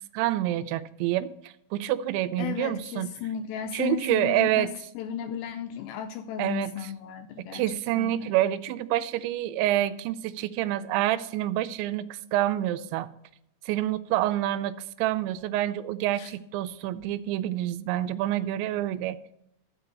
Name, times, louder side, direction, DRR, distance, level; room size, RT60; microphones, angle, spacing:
voice 1, 0.1-3.1 3.7-4.7 6.4-6.7 7.5-13.1 13.7-19.2, right 13 dB, 85° right, 2.8 m, -27 dB
voice 2, 2.4-8.3 16.2-16.3, left 9 dB, 80° left, 2.6 m, -35 dB
12.0 x 4.9 x 8.2 m
omnidirectional pair, 5.4 m